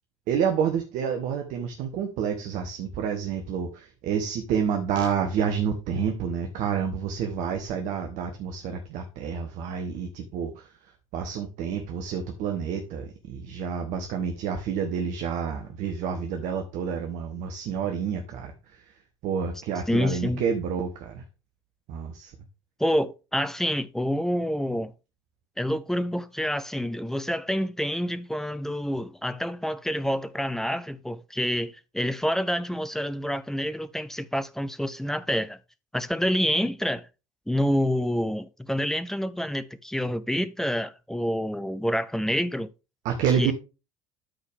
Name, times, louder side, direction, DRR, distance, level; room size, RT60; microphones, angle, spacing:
voice 1, 0.3-10.7 11.1-18.9 19.2-21.2 21.9-22.3 43.0-43.5, right 7 dB, 50° right, 1.3 m, -29 dB
voice 2, 19.9-20.4 22.8-24.9 25.6-35.6 35.9-37.1 37.5-42.7 43.4-43.5, equal, 5° left, 0.7 m, -27 dB
13.0 x 4.6 x 3.5 m
figure-of-eight pair, 65°, 16 cm